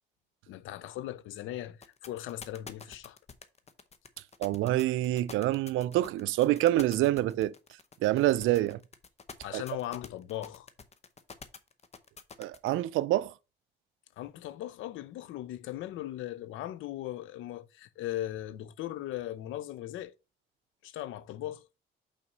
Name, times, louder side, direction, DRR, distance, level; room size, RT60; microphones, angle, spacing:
voice 1, 0.5-3.2 9.4-10.7 14.2-20.1 20.8-21.8, left 13 dB, 85° left, 0.6 m, -38 dB
sound 1, 1.8-12.7, left 5 dB, 35° left, 0.8 m, -47 dB
voice 2, 4.4-7.5 8.0-8.8 9.5-9.6 12.4-13.3, right 15 dB, 85° right, 0.4 m, -26 dB
5.8 x 4.2 x 5.3 m
cardioid pair, 90°, 20 cm